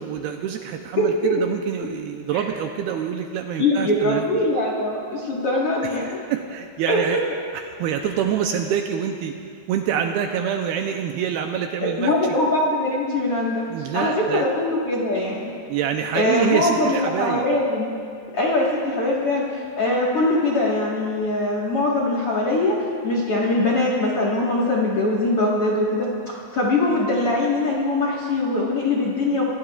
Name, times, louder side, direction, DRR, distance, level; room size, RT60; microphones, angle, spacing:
voice 1, 0.0-4.3 5.8-7.2 7.7-9.3 9.7-12.1 13.7-14.4 15.7-17.5, right 8 dB, 85° right, 4 dB, 2.3 m, -26 dB
voice 2, 1.0-1.3 2.3-2.4 3.6-6.2 6.9-7.2 8.0-8.1 11.8-13.6 13.9-15.5 16.1-17.9 18.3-22.8 23.0-29.4, left 2 dB, 60° left, -4 dB, 1.5 m, -22 dB
26.0 x 17.0 x 2.4 m, 2.3 s
omnidirectional pair, 5.0 m